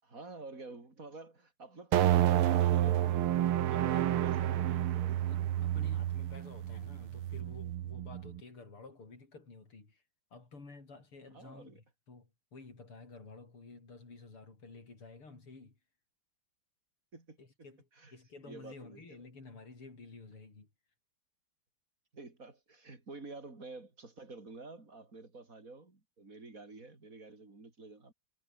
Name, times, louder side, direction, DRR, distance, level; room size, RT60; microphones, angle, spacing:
voice 1, 0.0-3.3 3.6-5.2 11.3-11.8 17.1-17.4 17.9-18.1 18.4-19.0 22.1-28.1, right 3 dB, 40° right, 4.7 m, -50 dB
sound 1, 1.9-8.4, right 12 dB, 90° right, 2.0 m, -30 dB
voice 2, 3.7-4.8 5.2-10.0 10.3-15.8 17.4-20.7, left 3 dB, 90° left, 6.3 m, -52 dB
omnidirectional pair, 2.3 m